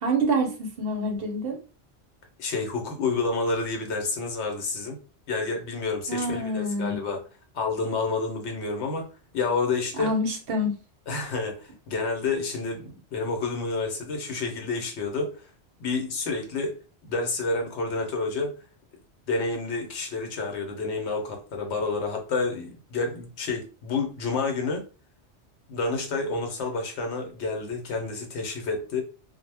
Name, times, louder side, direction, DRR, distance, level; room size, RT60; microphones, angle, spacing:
voice 1, 0.0-1.6 6.1-7.0 10.0-10.8, right 1 dB, 60° right, 0.7 m, -27 dB
voice 2, 2.4-5.0 5.3-7.2 7.5-9.1 9.3-10.1 11.1-15.5 15.8-16.7 17.0-18.6 19.3-24.8 25.7-29.0, left 3 dB, 75° left, 1.0 m, -29 dB
2.1 x 2.0 x 3.2 m
omnidirectional pair, 1.2 m